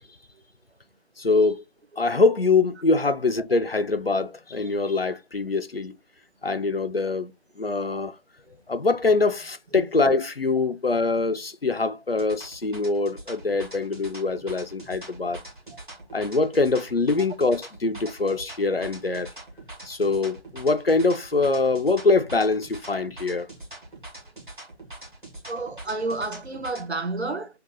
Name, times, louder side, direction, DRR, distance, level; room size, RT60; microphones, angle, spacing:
voice 1, 1.2-1.6 2.0-5.9 6.4-8.2 8.7-15.4 16.1-19.3 19.8-23.5, left 3 dB, 60° left, 0.5 m, -24 dB
sound 1, 12.1-26.9, right 2 dB, 45° right, 1.6 m, -43 dB
voice 2, 25.5-27.5, right 3 dB, 70° right, 0.8 m, -30 dB
3.7 x 2.3 x 3.7 m
figure-of-eight pair, 175°, 34 cm